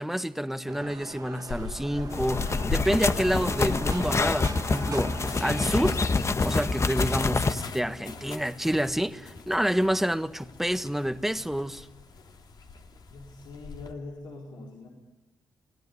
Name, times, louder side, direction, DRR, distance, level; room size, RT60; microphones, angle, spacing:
voice 1, 0.0-6.0 6.4-11.9, equal, 5° right, 1.4 m, -28 dB
sound 1, 0.7-5.7, right 5 dB, 50° right, 1.8 m, -42 dB
sound 2, 1.5-13.9, left 4 dB, 65° left, 3.2 m, -40 dB
sound 3, 2.1-7.5, left 4 dB, 40° left, 1.1 m, -27 dB
voice 2, 13.1-14.9, left 3 dB, 85° left, 4.7 m, -42 dB
25.5 x 18.0 x 9.7 m
cardioid pair, 65°, 8 cm